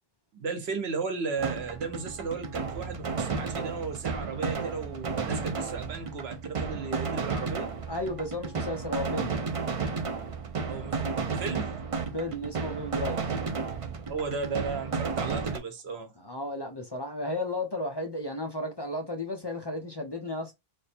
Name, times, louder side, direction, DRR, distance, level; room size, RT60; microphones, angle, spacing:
voice 1, 0.3-7.7 10.7-11.1 11.4-11.7 14.1-16.1, right 4 dB, 80° right, 1.1 m, -35 dB
sound 1, 1.4-15.6, right 5 dB, 40° right, 0.5 m, -33 dB
voice 2, 7.9-9.4 12.1-13.2 16.2-20.5, left 1 dB, 30° left, 0.6 m, -33 dB
3.4 x 2.1 x 4.2 m
omnidirectional pair, 1.0 m